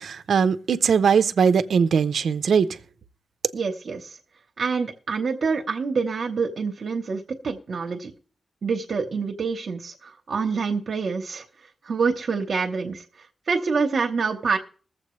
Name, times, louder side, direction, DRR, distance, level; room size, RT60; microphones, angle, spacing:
voice 1, 0.0-2.8, right 6 dB, 70° right, 0.7 m, -20 dB
voice 2, 3.5-4.2 4.6-8.1 8.6-11.4 11.8-14.6, right 5 dB, 55° right, 1.0 m, -26 dB
21.5 x 7.5 x 3.2 m
wide cardioid pair, 150°, 0 cm